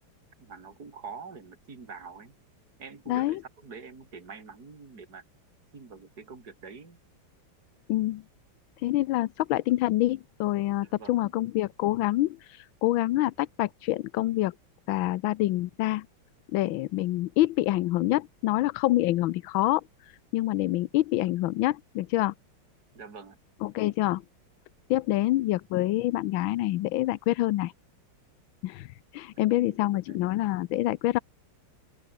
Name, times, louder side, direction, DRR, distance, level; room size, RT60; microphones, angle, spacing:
voice 1, 0.4-2.3 2.8-5.2 5.7-7.0 10.8-11.2 22.9-23.4 25.1-25.2 29.4-29.8 30.1-30.2, right 5 dB, 50° right, 3.8 m, -45 dB
voice 2, 3.1-3.4 7.9-8.2 8.8-14.5 14.9-16.1 16.5-22.3 23.6-24.2 24.9-27.7 28.6-31.2, left 16 dB, 75° left, 1.4 m, -26 dB
open air
omnidirectional pair, 2.3 m